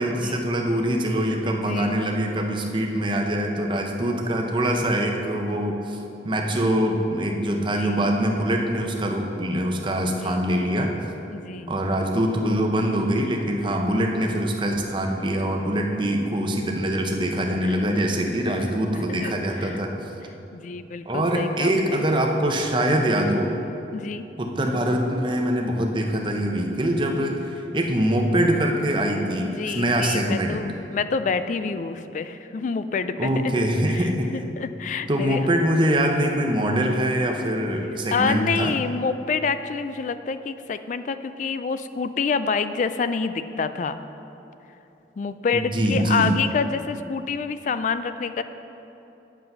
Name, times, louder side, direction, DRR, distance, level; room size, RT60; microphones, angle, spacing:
voice 1, 0.0-6.0 6.2-10.9 11.7-19.9 21.1-23.5 24.4-30.6 33.2-34.3 35.1-38.7 45.5-46.3, right 1 dB, 25° right, 2 dB, 0.7 m, -23 dB
voice 2, 1.5-2.0 7.6-8.0 10.0-10.8 11.3-11.7 17.6-18.0 18.5-18.6 19.1-19.3 19.6-19.8 20.5-22.0 23.9-24.3 29.4-33.6 33.9-35.5 38.1-44.0 45.2-48.4, left 5 dB, 45° left, 11 dB, 0.3 m, -28 dB
8.1 x 7.5 x 5.4 m, 2.9 s
head